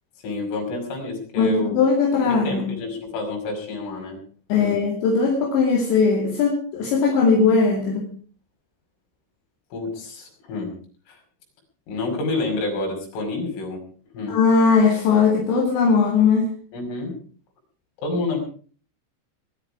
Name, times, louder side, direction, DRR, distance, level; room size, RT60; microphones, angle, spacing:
voice 1, 0.2-1.8 2.2-4.2 4.6-4.8 9.7-10.8 11.1-11.2 11.9-13.8 14.1-14.4 16.7-17.2 18.0-18.4, left 2 dB, 80° left, 1 dB, 8.1 m, -29 dB
voice 2, 1.4-2.7 4.5-8.1 14.3-16.5, left 5 dB, 65° left, 0 dB, 4.7 m, -19 dB
21.5 x 12.5 x 4.9 m, 0.42 s
omnidirectional pair, 5.7 m